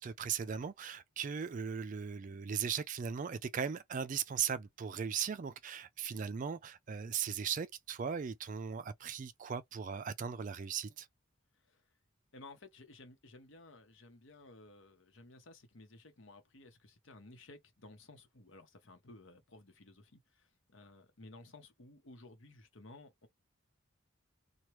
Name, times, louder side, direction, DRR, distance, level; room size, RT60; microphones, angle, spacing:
voice 1, 0.0-11.1, right 7 dB, 40° right, 0.3 m, -38 dB
voice 2, 12.3-23.3, left 2 dB, 65° left, 1.0 m, -56 dB
3.0 x 2.3 x 3.0 m
head